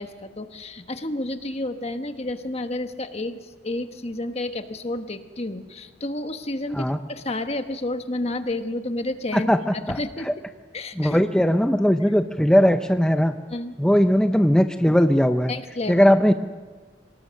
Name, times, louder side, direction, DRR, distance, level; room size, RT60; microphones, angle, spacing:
voice 1, 0.0-9.5 9.7-10.3 10.7-11.2 13.5-13.7 15.5-16.1, left 2 dB, 35° left, 8 dB, 1.3 m, -30 dB
voice 2, 9.3-10.0 10.2-10.3 11.0-13.4 13.8-15.5 15.9-16.3, equal, 5° left, 7 dB, 0.6 m, -19 dB
25.5 x 19.5 x 6.5 m, 1.4 s
head